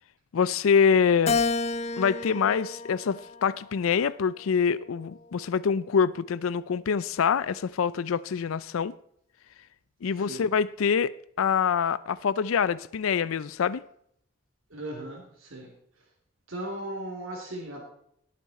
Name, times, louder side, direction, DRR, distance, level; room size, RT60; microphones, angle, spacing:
voice 1, 0.3-1.4 2.0-8.9 10.0-13.8, left 6 dB, 85° left, 0.4 m, -25 dB
Keyboard (musical), 1.3-3.8 4.4-5.6, left 4 dB, 30° left, 0.5 m, -31 dB
voice 2, 14.7-15.7 16.5-17.8, right 1 dB, 80° right, 3.1 m, -37 dB
18.5 x 8.4 x 4.2 m
head